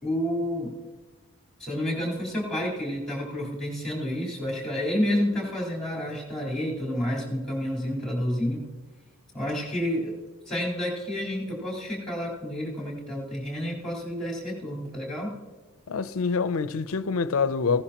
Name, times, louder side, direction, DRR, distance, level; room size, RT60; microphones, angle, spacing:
voice 1, 0.0-0.7 1.6-8.6 9.3-10.1 10.5-15.3, equal, ahead, 4.2 m, -29 dB
voice 2, 15.9-17.8, left 5 dB, 80° left, 0.5 m, -26 dB
16.5 x 11.0 x 2.9 m
head